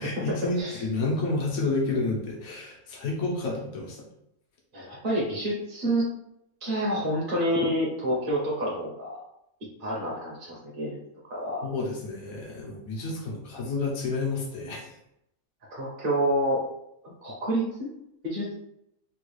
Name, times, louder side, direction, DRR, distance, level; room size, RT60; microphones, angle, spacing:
voice 1, 0.0-4.0 11.6-14.9, left 3 dB, 80° left, -2 dB, 1.3 m, -30 dB
voice 2, 0.6-0.9 4.7-6.1 6.6-9.2 9.8-11.0 11.3-11.6 15.7-16.6 17.0-17.9 18.2-18.5, right 1 dB, 45° right, -4 dB, 0.8 m, -28 dB
3.5 x 2.3 x 3.2 m, 0.78 s
omnidirectional pair, 1.5 m